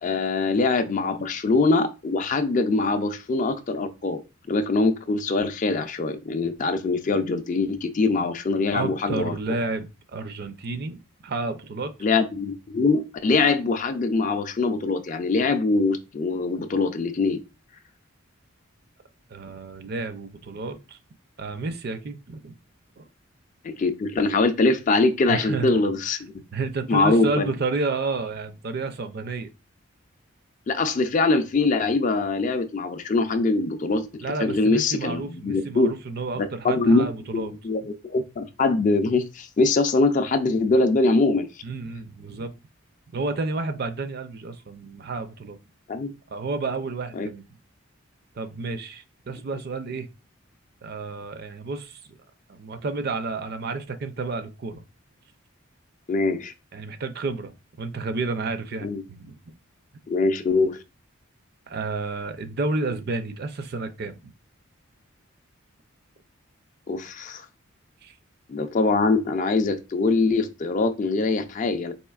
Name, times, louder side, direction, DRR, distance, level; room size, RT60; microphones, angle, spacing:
voice 1, 0.0-4.2 4.5-9.4 12.0-17.4 23.6-26.3 26.9-27.5 30.7-35.9 36.4-37.1 37.3-41.5 45.9-46.1 47.2-47.3 56.1-56.5 58.8-59.0 60.1-60.8 66.9-67.4 68.5-71.9, left 3 dB, 40° left, 0.4 m, -23 dB
voice 2, 8.7-11.0 11.2-11.9 19.3-21.0 21.4-22.5 23.0-23.1 25.3-25.8 26.5-29.5 34.2-37.9 41.6-42.5 43.1-45.6 46.3-47.4 48.4-50.1 50.8-52.0 52.5-54.8 56.7-57.5 57.8-59.5 61.7-64.3 68.0-68.1, right 3 dB, 50° right, 0.5 m, -31 dB
4.2 x 3.0 x 2.3 m
head